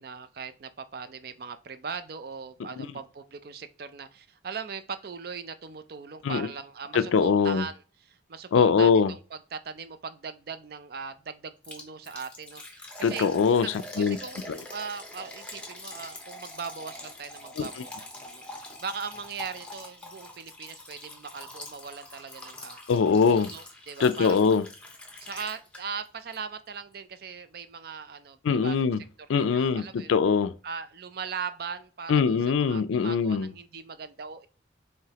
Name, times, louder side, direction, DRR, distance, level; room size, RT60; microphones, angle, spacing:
voice 1, 0.0-7.8 8.1-13.3 13.6-13.7 14.0-17.9 18.2-18.5 18.8-22.8 23.3-24.5 25.2-28.9 29.4-30.1 30.6-34.5, right 5 dB, 50° right, 0.4 m, -39 dB
voice 2, 6.9-7.6 8.5-9.1 13.0-14.2 14.5-14.6 17.6-17.7 22.9-23.5 24.0-24.6 28.4-29.0 29.3-30.5 32.1-33.5, left 5 dB, 90° left, 0.4 m, -22 dB
Liquid, 11.6-26.1 26.3-26.4 26.9-27.0, left 1 dB, 5° left, 0.7 m, -44 dB
4.8 x 3.2 x 2.8 m
head